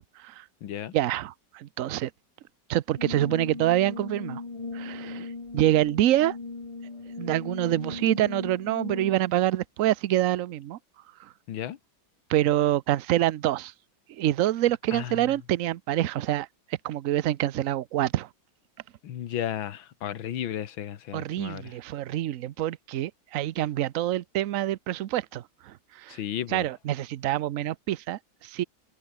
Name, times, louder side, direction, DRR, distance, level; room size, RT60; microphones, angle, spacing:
voice 1, 0.0-0.5 0.9-2.1 2.7-4.4 4.7-6.4 7.2-10.8 11.2-11.3 12.3-13.7 14.1-18.3 21.1-26.2 26.5-28.6, right 13 dB, 65° right, 0.8 m, -26 dB
voice 2, 0.6-1.0 11.5-11.8 14.9-15.3 19.0-21.7 26.1-26.7, left 10 dB, 80° left, 2.0 m, -34 dB
Brass instrument, 3.0-9.4, left 3 dB, 20° left, 1.0 m, -38 dB
open air
omnidirectional pair, 2.1 m